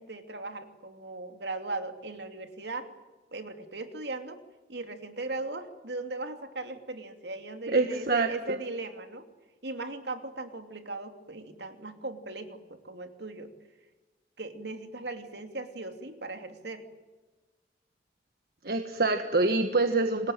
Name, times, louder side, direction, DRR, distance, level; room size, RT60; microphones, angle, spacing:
voice 1, 0.0-2.9 3.3-4.4 4.7-9.3 9.6-13.5 14.4-16.8, right 2 dB, 70° right, 7 dB, 2.8 m, -38 dB
voice 2, 7.7-8.3 18.6-20.3, right 3 dB, 55° right, 6 dB, 1.5 m, -25 dB
27.0 x 20.0 x 9.1 m, 1.2 s
head